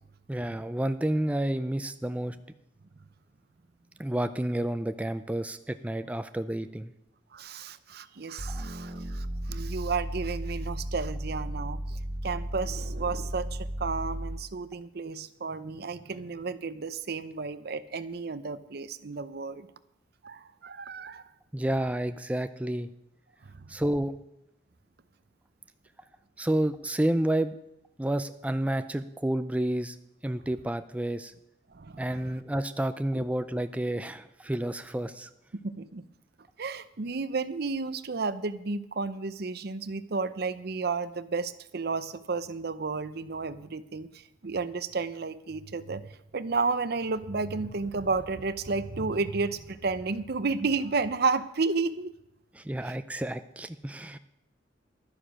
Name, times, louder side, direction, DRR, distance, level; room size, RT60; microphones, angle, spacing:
voice 1, 0.3-2.4 4.0-6.9 8.5-8.6 21.5-22.9 23.7-24.1 26.4-27.5 28.0-30.0 30.2-31.3 32.0-35.3 52.6-54.2, right 1 dB, 10° right, 10 dB, 0.4 m, -30 dB
voice 2, 7.3-19.7 20.2-21.2 23.4-23.7 31.7-32.4 33.1-33.2 35.6-36.0 36.6-46.0 46.3-52.1 52.8-52.9, right 4 dB, 60° right, 14 dB, 0.6 m, -32 dB
sound 1, 8.4-14.6, equal, 30° right, 1.2 m, -35 dB
12.5 x 9.9 x 6.2 m, 0.83 s
head